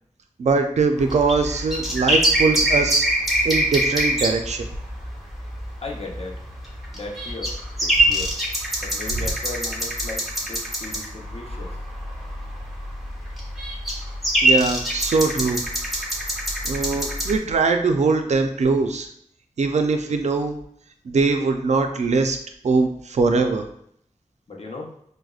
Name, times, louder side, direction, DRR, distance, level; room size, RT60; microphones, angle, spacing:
voice 1, 0.4-3.1 3.4-4.7 14.4-15.6 16.7-19.1 19.6-20.6 21.1-22.4 22.6-23.7, right 4 dB, 55° right, 6 dB, 0.4 m, -21 dB
sound 1, 1.0-17.4, right 1 dB, ahead, 0.8 m, -25 dB
voice 2, 5.8-6.4 6.9-7.5 7.8-8.3 8.8-11.8 24.5-24.9, left 2 dB, 50° left, -1 dB, 0.8 m, -36 dB
4.8 x 2.0 x 2.3 m, 0.69 s
wide cardioid pair, 70°, 14 cm